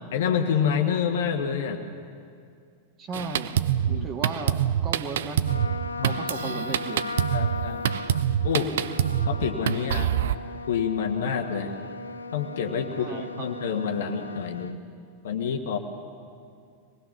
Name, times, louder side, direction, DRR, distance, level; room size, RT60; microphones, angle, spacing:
voice 1, 0.1-1.8 3.9-4.1 5.9-6.2 7.3-7.9 8.4-8.7 9.2-10.1 10.7-11.7 12.3-14.8 15.2-15.8, left 7 dB, 60° left, 5 dB, 1.6 m, -27 dB
voice 2, 3.0-3.5 3.9-4.6 4.8-5.4 6.0-7.0 12.9-13.5, right 4 dB, 30° right, 4 dB, 2.1 m, -35 dB
Drum kit, 3.1-10.4, right 10 dB, 60° right, 0.5 m, -26 dB
Trumpet, 5.4-14.8, left 3 dB, 80° left, 0.7 m, -37 dB
26.0 x 20.0 x 6.0 m, 2.3 s
figure-of-eight pair, 90°, 0 cm